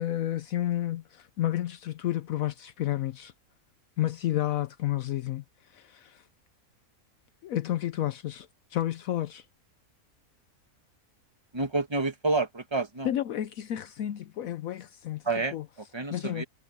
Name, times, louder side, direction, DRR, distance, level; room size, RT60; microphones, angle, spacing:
voice 1, 0.0-3.3 4.0-5.4 5.7-6.2 7.4-9.4 13.0-15.2 15.5-15.6 16.1-16.4, left 13 dB, 75° left, 1.1 m, -31 dB
voice 2, 11.5-13.1 15.2-16.4, right 3 dB, 20° right, 1.5 m, -29 dB
omnidirectional pair, 1.5 m